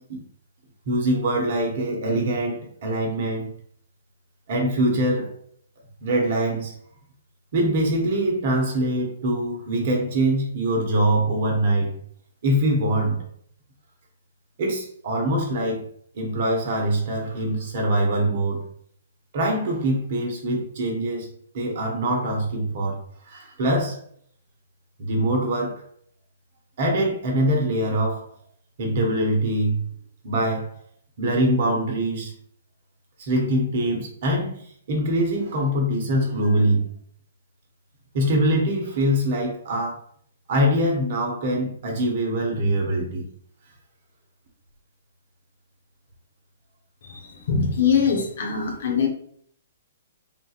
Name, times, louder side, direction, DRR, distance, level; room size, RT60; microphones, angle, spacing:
voice 1, 0.9-3.5 4.5-5.3 6.0-6.7 7.5-11.9 12.4-13.2 14.6-15.8 16.1-18.6 19.3-21.3 21.5-23.0 23.3-24.0 25.0-25.8 26.8-28.2 28.8-29.8 30.2-30.7 31.2-32.3 33.2-34.6 34.9-36.9 38.1-40.0 40.5-43.3, right 1 dB, 55° right, 0 dB, 1.2 m, -23 dB
voice 2, 47.0-49.1, left 6 dB, 65° left, 1 dB, 1.0 m, -23 dB
3.7 x 2.7 x 2.5 m, 0.63 s
hypercardioid pair, 125°, 0 cm